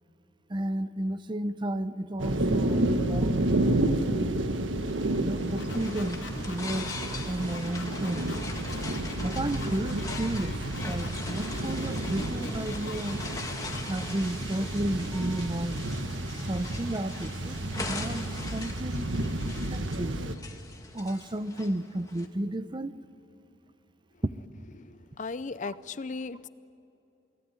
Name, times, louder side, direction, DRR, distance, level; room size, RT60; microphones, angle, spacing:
voice 1, 0.5-3.7 4.1-4.4 5.2-6.2 6.5-6.9 7.3-8.3 9.2-10.5 10.9-13.2 13.9-15.8 16.5-17.6 17.9-19.1 19.7-20.2 20.9-23.0, right 1 dB, 25° right, 13 dB, 0.7 m, -32 dB
sound 1, 2.2-20.4, right 1 dB, 90° right, 1.5 m, -31 dB
sound 2, 4.7-22.3, left 3 dB, 20° left, 1.7 m, -42 dB
sound 3, 5.6-13.8, left 3 dB, 80° left, 3.3 m, -43 dB
voice 2, 25.2-26.5, left 4 dB, 40° left, 15 dB, 0.5 m, -36 dB
28.5 x 18.5 x 9.6 m, 2.8 s
head